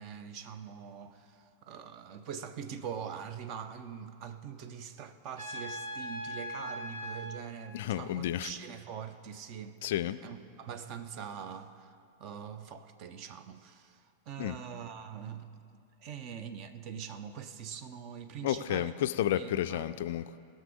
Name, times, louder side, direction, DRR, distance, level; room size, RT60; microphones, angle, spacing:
voice 1, 0.0-9.8 10.2-18.9 19.3-19.8, right 7 dB, 40° right, 0.7 m, -43 dB
Trumpet, 5.4-7.4, equal, 70° right, 1.9 m, -39 dB
voice 2, 7.7-8.5 9.8-10.2 14.4-14.6 18.4-20.4, left 12 dB, 55° left, 0.3 m, -31 dB
18.5 x 6.5 x 4.9 m
figure-of-eight pair, 90°, 0 cm